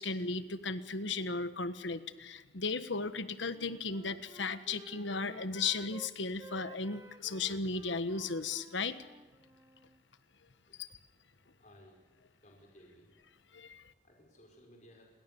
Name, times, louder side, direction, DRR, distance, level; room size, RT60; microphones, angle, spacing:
voice 1, 0.0-9.0 10.8-10.9 13.5-13.8, left 4 dB, 85° left, 12 dB, 1.4 m, -36 dB
Wind instrument woodwind instrument, 3.4-6.1 6.4-10.0, right 1 dB, 15° right, 1.1 m, -54 dB
voice 2, 11.6-12.0 12.4-13.1 14.0-15.0, equal, 40° left, 0 dB, 5.6 m, -59 dB
29.5 x 22.0 x 7.1 m, 1.2 s
head